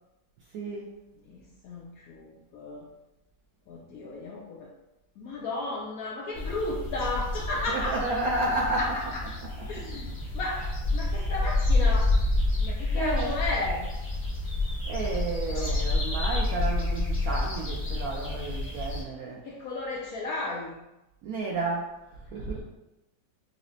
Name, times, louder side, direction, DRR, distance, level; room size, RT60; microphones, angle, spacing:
voice 1, 0.5-0.9 7.7-9.0 10.5-10.7 12.9-13.4 14.9-19.4 21.2-22.6, right 2 dB, 75° right, -2 dB, 0.8 m, -31 dB
voice 2, 1.2-2.9 3.7-4.7 5.2-8.0 8.7-9.2 9.7-10.6 10.9-12.1 12.6-13.9 15.5-15.8 19.4-20.8, left 2 dB, 70° left, -3 dB, 0.8 m, -34 dB
sound 1, 6.3-19.0, left 2 dB, 10° left, 0.7 m, -28 dB
5.9 x 2.0 x 2.7 m, 0.94 s
omnidirectional pair, 1.9 m